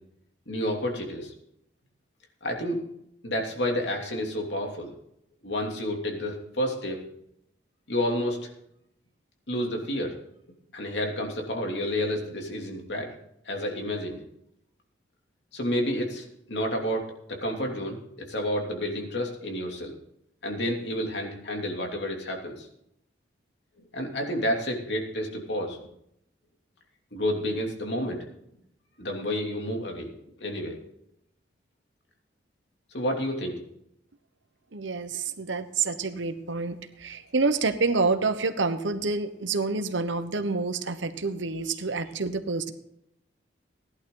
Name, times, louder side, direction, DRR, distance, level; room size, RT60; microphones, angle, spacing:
voice 1, 0.5-1.3 2.4-2.8 3.2-4.9 5.4-7.0 7.9-8.5 9.5-10.2 10.7-13.1 13.4-14.2 15.5-19.9 20.4-22.7 23.9-25.8 27.1-28.2 29.0-30.7 32.9-33.6, equal, 70° left, 1 dB, 2.9 m, -30 dB
voice 2, 34.7-42.7, right 4 dB, 85° right, 10 dB, 1.1 m, -28 dB
16.5 x 11.5 x 3.9 m, 0.74 s
head